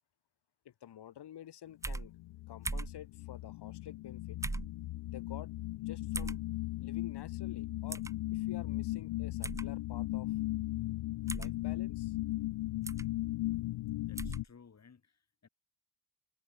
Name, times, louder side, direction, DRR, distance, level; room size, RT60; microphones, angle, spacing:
voice 1, 0.7-2.1 2.5-4.4 5.1-5.5 5.8-6.4 6.8-8.0 8.3-10.4 11.3-12.2, left 10 dB, 65° left, 2.1 m, -50 dB
sound 1, 1.8-2.1 2.7-3.0 4.4-4.7 6.1-6.4 7.9-8.1 9.4-9.7 11.3-11.5 12.9-13.1 14.2-14.4, right 2 dB, 10° right, 0.3 m, -38 dB
sound 2, 2.0-14.4, left 18 dB, 85° left, 0.6 m, -37 dB
voice 2, 14.0-15.5, left 6 dB, 35° left, 3.6 m, -59 dB
cardioid pair, 110°, 43 cm